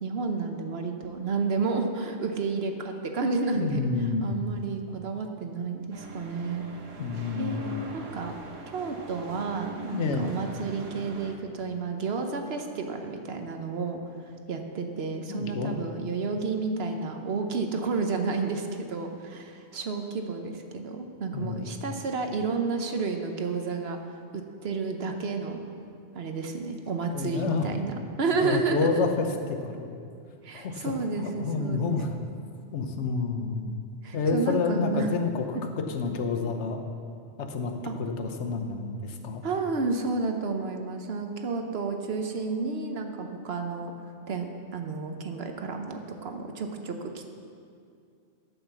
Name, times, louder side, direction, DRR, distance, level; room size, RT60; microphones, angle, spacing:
voice 1, 0.0-6.6 7.4-8.3 8.7-14.0 14.5-24.0 24.3-25.6 26.1-29.0 30.4-32.0 34.0-35.1 35.5-35.6 37.8-37.9 39.4-43.9 44.3-47.3, right 4 dB, 55° right, 5 dB, 1.1 m, -31 dB
voice 2, 3.6-4.3 7.0-7.7 9.9-10.3 15.3-15.7 21.3-21.7 27.1-27.7 28.4-29.9 30.5-32.1 32.7-33.7 34.1-36.8 37.4-37.7 38.0-39.4, left 4 dB, 70° left, 5 dB, 1.2 m, -29 dB
sound 1, 5.9-11.3, right 3 dB, 80° right, 1.4 m, -43 dB
12.0 x 5.7 x 7.0 m, 2.4 s
omnidirectional pair, 1.3 m